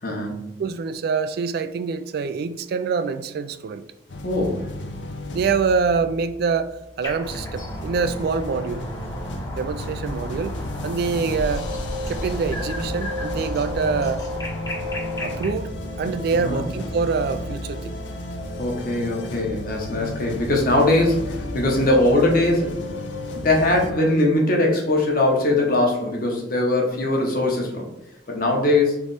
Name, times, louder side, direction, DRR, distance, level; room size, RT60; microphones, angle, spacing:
voice 1, 0.0-0.5 4.2-4.7 16.3-16.6 18.6-23.0 23.3-27.9 28.3-29.0, left 2 dB, 50° left, 0 dB, 1.1 m, -21 dB
voice 2, 0.6-3.8 5.3-8.8 9.6-10.6 10.8-11.7 12.1-14.2 15.2-17.9, right 5 dB, 55° right, 11 dB, 0.3 m, -25 dB
sound 1, 4.1-6.9 7.3-23.9, left 1 dB, 80° left, 0.6 m, -32 dB
Moscow Borisovo Nightingale night spring(XY), 7.0-15.5, left 1 dB, 20° left, 0.8 m, -35 dB
3.4 x 3.1 x 4.0 m, 0.88 s
head